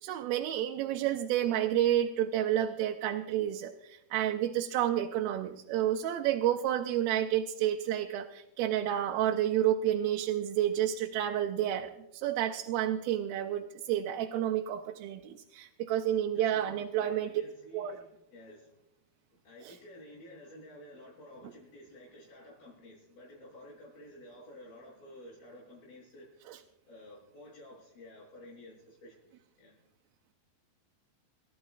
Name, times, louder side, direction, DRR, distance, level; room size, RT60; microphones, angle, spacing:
voice 1, 0.0-17.4 17.7-18.0 19.6-19.8 26.5-26.6, right 11 dB, 85° right, 3 dB, 2.6 m, -30 dB
voice 2, 16.3-18.7 19.4-26.4 26.9-29.8, left 1 dB, 75° left, -10 dB, 9.4 m, -52 dB
29.5 x 13.5 x 2.4 m, 0.89 s
omnidirectional pair, 4.2 m